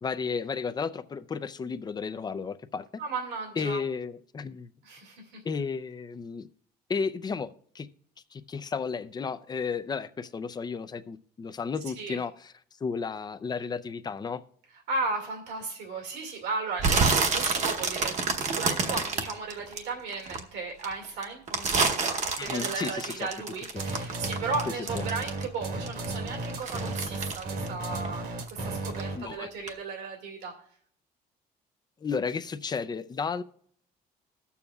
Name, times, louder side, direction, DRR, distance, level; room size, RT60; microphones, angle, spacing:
voice 1, 0.0-2.8 3.6-4.7 5.4-6.5 6.9-7.9 8.3-12.5 12.8-14.4 22.4-23.1 24.9-25.0 29.1-29.5 32.0-33.4, left 5 dB, 25° left, 0.5 m, -33 dB
voice 2, 3.0-3.8 4.8-5.4 12.0-12.2 14.9-30.5, right 4 dB, 85° right, 2.1 m, -35 dB
sound 1, 16.8-20.4 20.8-25.6 25.9-28.6 28.9-29.2 29.7-29.8, right 4 dB, 45° right, 0.9 m, -28 dB
sound 2, 23.8-29.3, right 2 dB, 60° right, 1.4 m, -34 dB
20.5 x 7.0 x 2.4 m
cardioid pair, 110°, 17 cm